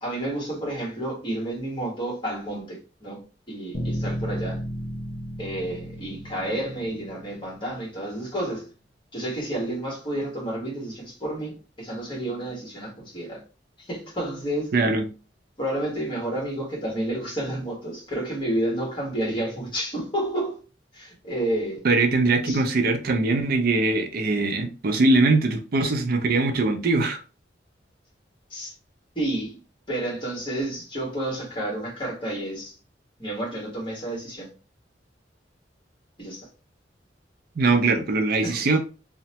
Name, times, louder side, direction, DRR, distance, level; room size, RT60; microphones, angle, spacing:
voice 1, 0.0-4.6 5.4-8.7 9.1-13.4 13.9-14.7 15.6-20.6 20.9-21.8 22.5-22.6 28.5-28.7 29.1-29.6 29.9-32.7 33.2-34.5 36.2-36.5 38.4-38.6, right 1 dB, 30° left, 1.3 m, -30 dB
Bass guitar, 3.7-8.1, equal, 50° left, 0.7 m, -34 dB
voice 2, 14.7-15.1 21.8-27.2 37.6-38.8, right 3 dB, 55° right, 0.5 m, -21 dB
2.9 x 2.1 x 2.8 m
head